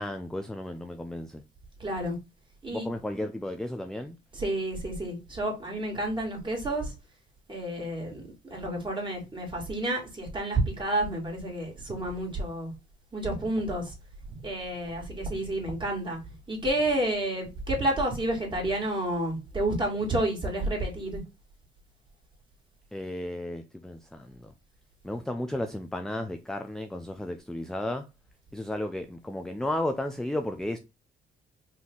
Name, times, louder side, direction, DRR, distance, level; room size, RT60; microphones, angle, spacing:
voice 1, 0.0-1.4 2.7-4.2 22.9-24.5 25.0-28.1 28.5-30.8, left 1 dB, 5° left, 0.4 m, -33 dB
voice 2, 1.8-2.2 2.6-2.9 4.3-6.9 7.5-12.7 13.1-13.9 14.3-16.2 16.5-21.2, right 1 dB, 25° right, 2.4 m, -30 dB
4.1 x 2.9 x 3.7 m
cardioid pair, 90°, 20 cm